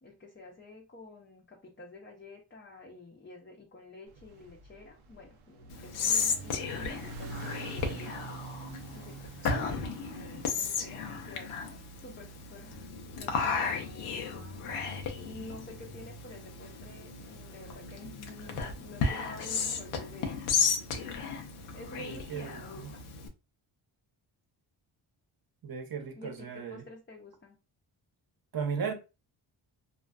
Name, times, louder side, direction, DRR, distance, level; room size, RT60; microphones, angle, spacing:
voice 1, 0.0-8.3 8.9-11.6 12.0-14.6 15.2-20.5 21.7-23.0 26.1-27.6, left 2 dB, 25° left, 0.6 m, -49 dB
sound 1, 4.1-12.4, right 4 dB, 85° right, 0.6 m, -47 dB
Whispering, 5.7-23.3, left 5 dB, 85° left, 0.6 m, -34 dB
voice 2, 9.4-9.8 22.0-22.9 25.6-26.8 28.5-28.9, right 6 dB, 45° right, 0.8 m, -36 dB
2.4 x 2.4 x 2.2 m
cardioid pair, 60°, 49 cm